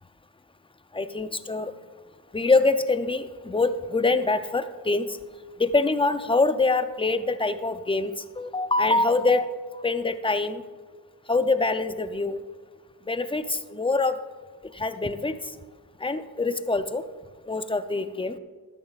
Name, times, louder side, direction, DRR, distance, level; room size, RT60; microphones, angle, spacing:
voice 1, 0.9-1.7 2.3-5.2 5.6-10.6 11.3-12.4 13.1-14.2 14.7-15.3 16.0-17.0 17.5-18.4, left 3 dB, 15° left, 11 dB, 0.6 m, -24 dB
14.0 x 10.5 x 2.4 m, 1.4 s
cardioid pair, 65°, 40 cm